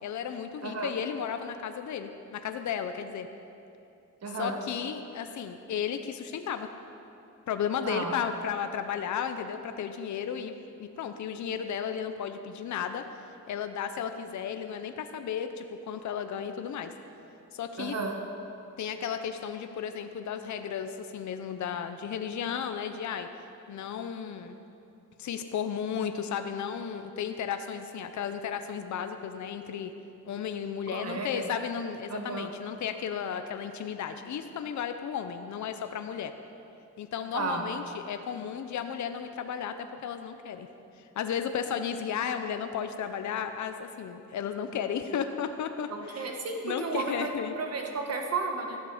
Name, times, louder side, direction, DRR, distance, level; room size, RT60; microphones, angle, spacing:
voice 1, 0.0-3.3 4.4-6.7 7.5-16.9 17.5-18.0 18.8-23.3 23.7-24.6 25.2-29.9 30.2-36.3 37.0-40.7 41.0-46.3 46.6-47.5, left 8 dB, 65° left, 8 dB, 0.7 m, -34 dB
voice 2, 4.2-4.6 7.8-8.1 17.8-18.1 30.9-31.4 32.1-32.5 37.3-37.6 45.9-48.8, right 4 dB, 55° right, 2 dB, 1.7 m, -33 dB
14.5 x 12.0 x 5.0 m, 2.8 s
wide cardioid pair, 150°, 31 cm